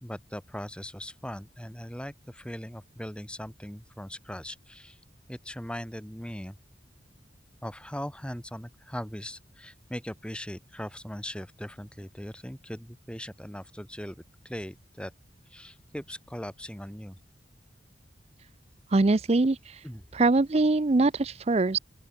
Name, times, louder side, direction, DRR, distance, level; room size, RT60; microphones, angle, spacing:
voice 1, 0.0-5.0 5.3-6.5 7.6-14.1 14.4-15.1 15.5-17.2 19.8-20.0, equal, 5° left, 3.2 m, -39 dB
voice 2, 18.9-19.8 20.1-21.8, right 3 dB, 35° right, 0.5 m, -23 dB
open air
head